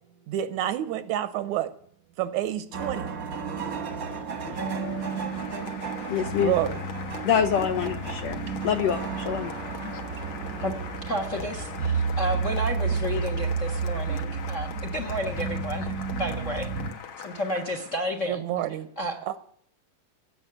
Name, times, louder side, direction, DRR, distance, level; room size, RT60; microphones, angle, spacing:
voice 1, 0.3-1.7 2.2-3.1 6.4-6.8 18.3-18.9 19.3-19.4, right 12 dB, 75° right, 13 dB, 2.1 m, -28 dB
sound 1, 2.7-16.9, right 5 dB, 40° right, 1.2 m, -31 dB
Applause, 3.9-18.3, left 7 dB, 55° left, 2.1 m, -42 dB
voice 2, 6.1-6.6 7.2-9.5, left 8 dB, 75° left, 9 dB, 1.6 m, -26 dB
voice 3, 11.1-16.7 17.2-18.5 19.0-19.2, equal, 40° left, 6 dB, 1.1 m, -31 dB
17.0 x 7.8 x 8.9 m, 0.63 s
omnidirectional pair, 3.6 m